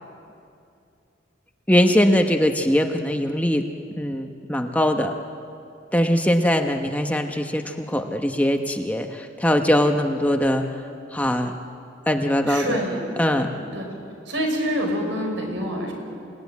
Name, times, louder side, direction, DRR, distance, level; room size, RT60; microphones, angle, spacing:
voice 1, 1.7-3.7 4.0-5.1 5.9-10.7 11.1-11.5 12.1-12.7 13.2-13.5, equal, 10° left, 4 dB, 1.0 m, -21 dB
voice 2, 12.5-13.0 13.5-13.9 14.3-15.9, equal, 80° right, 2 dB, 5.9 m, -26 dB
28.5 x 18.0 x 9.4 m, 2.5 s
head